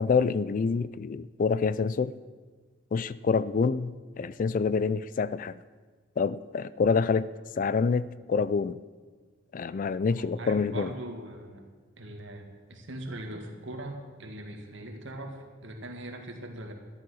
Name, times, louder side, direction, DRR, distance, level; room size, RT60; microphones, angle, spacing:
voice 1, 0.0-2.1 2.9-5.5 6.2-7.3 7.6-8.8 9.5-10.9, left 5 dB, 40° left, 0.3 m, -27 dB
voice 2, 10.0-11.7 12.0-16.7, right 1 dB, 65° right, 2.0 m, -41 dB
13.0 x 10.5 x 6.2 m
head